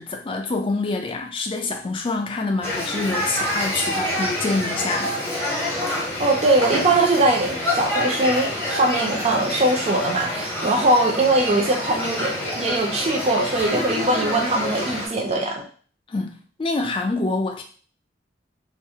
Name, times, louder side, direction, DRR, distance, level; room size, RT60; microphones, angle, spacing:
voice 1, 0.0-5.2 16.1-16.3 16.6-17.6, left 3 dB, 30° left, 3 dB, 0.3 m, -26 dB
sound 1, 2.6-15.1, left 1 dB, 10° left, 0.7 m, -27 dB
voice 2, 6.2-15.7, right 2 dB, 35° right, 1 dB, 0.4 m, -21 dB
2.4 x 2.0 x 2.7 m, 0.43 s
head